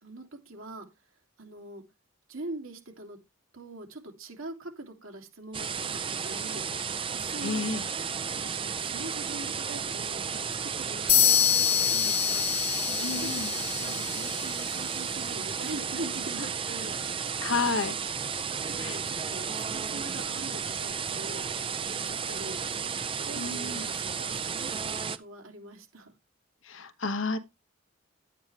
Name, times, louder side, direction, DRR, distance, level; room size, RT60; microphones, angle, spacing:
voice 1, 0.0-0.9 1.4-1.8 2.3-3.2 3.5-5.7 6.2-6.6 7.1-7.6 8.4-12.4 12.9-17.0 18.6-21.4 21.9-22.6 23.2-23.5 23.8-26.1, right 2 dB, 75° right, 2.8 m, -43 dB
sound 1, 5.5-25.2, right 6 dB, 25° right, 0.5 m, -33 dB
voice 2, 7.4-7.9 13.0-13.5 17.4-18.0 18.8-19.0 23.4-23.9 26.6-27.4, left 4 dB, 65° left, 1.1 m, -31 dB
sound 2, 11.1-14.9, left 10 dB, 25° left, 0.8 m, -26 dB
11.0 x 8.8 x 3.4 m
head